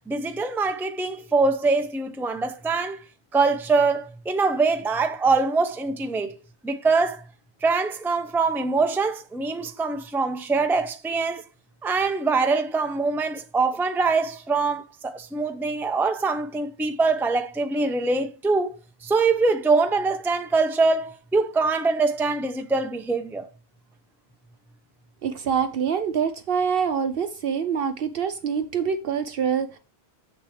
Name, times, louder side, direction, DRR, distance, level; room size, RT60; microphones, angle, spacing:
voice 1, 0.1-3.0 3.3-6.4 6.6-7.2 7.6-11.4 11.8-18.8 19.0-23.5, right 4 dB, 5° right, 0.5 m, -23 dB
voice 2, 25.2-29.8, right 7 dB, 70° right, 0.8 m, -25 dB
7.5 x 6.7 x 3.2 m
omnidirectional pair, 1.0 m